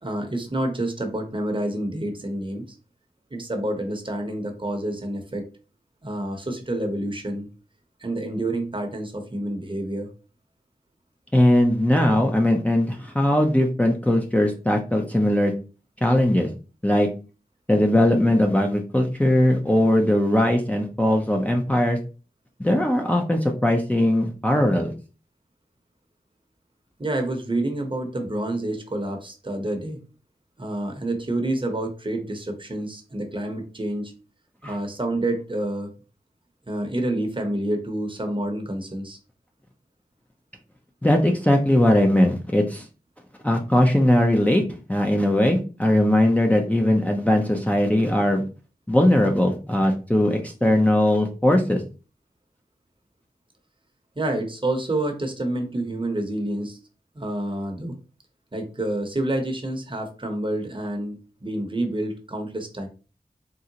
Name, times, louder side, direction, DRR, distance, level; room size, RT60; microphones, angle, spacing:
voice 1, 0.0-2.8 3.3-5.5 6.0-7.5 8.0-10.1 27.0-30.0 30.6-34.1 34.6-35.9 36.7-39.2 54.2-56.8 57.1-58.0 58.5-62.9, right 1 dB, 30° right, 4 dB, 0.8 m, -28 dB
voice 2, 11.3-15.5 16.0-16.5 16.8-17.1 17.7-22.0 22.6-24.9 34.6-34.7 41.0-42.9 43.4-44.6 44.9-48.4 48.9-51.8, left 1 dB, 10° left, 2 dB, 0.5 m, -20 dB
3.7 x 2.1 x 2.8 m, 0.35 s
cardioid pair, 45°, 16 cm